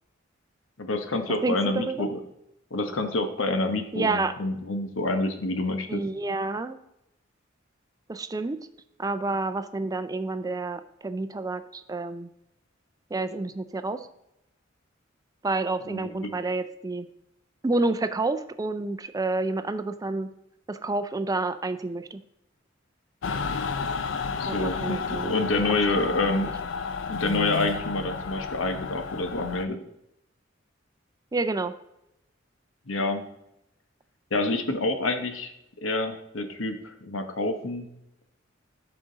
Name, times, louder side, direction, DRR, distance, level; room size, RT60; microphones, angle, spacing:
voice 1, 0.8-2.2 2.7-6.0 15.9-16.3 24.4-26.5 27.1-29.8 32.9-33.2 34.3-35.5 35.8-37.9, left 2 dB, 85° left, 7 dB, 1.1 m, -28 dB
voice 2, 1.3-2.1 3.9-4.3 5.9-6.8 8.1-8.6 9.0-12.3 13.1-14.1 15.4-17.1 17.6-20.3 20.7-22.2 24.5-25.3 25.9-26.2 31.3-31.7, right 3 dB, 20° right, 11 dB, 0.4 m, -29 dB
Mechanical fan, 23.2-29.6, left 5 dB, 65° left, 0.5 m, -31 dB
11.0 x 5.0 x 3.9 m, 0.83 s
head